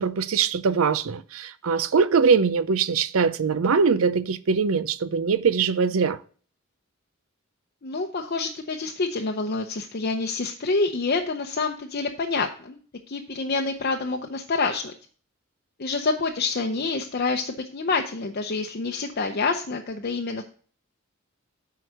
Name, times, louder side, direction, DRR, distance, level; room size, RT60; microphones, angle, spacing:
voice 1, 0.0-6.2, right 5 dB, 85° right, 0.6 m, -22 dB
voice 2, 7.8-12.8 13.1-14.9 15.8-20.4, left 3 dB, 50° left, 0.7 m, -27 dB
7.9 x 4.7 x 6.5 m
head